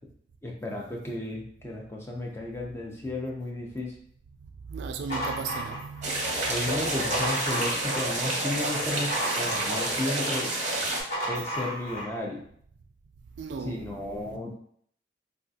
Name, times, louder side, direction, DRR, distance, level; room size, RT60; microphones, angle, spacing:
voice 1, 0.4-4.0 6.5-10.5 11.3-12.4 13.6-14.6, left 1 dB, 15° left, 0.5 m, -33 dB
voice 2, 4.7-6.3 13.4-13.9, right 5 dB, 65° right, 0.3 m, -35 dB
sound 1, 5.1-6.3 6.8-8.2 8.6-10.1 10.8-12.1, equal, 45° left, 1.5 m, -34 dB
sound 2, 6.0-11.0, right 1 dB, 40° right, 0.7 m, -29 dB
3.5 x 2.4 x 2.6 m
head